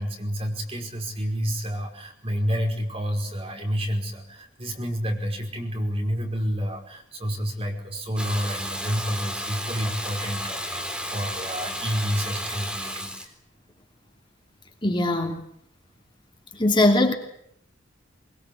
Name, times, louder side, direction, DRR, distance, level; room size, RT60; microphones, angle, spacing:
voice 1, 0.0-13.3, equal, 30° right, 3 dB, 5.2 m, -29 dB
Water tap faucet / Bathtub (filling or washing), 8.2-13.3, equal, 5° right, 4.0 m, -32 dB
voice 2, 14.8-15.4 16.6-17.1, left 1 dB, 25° left, 3 dB, 2.9 m, -20 dB
22.5 x 22.5 x 8.6 m, 0.67 s
head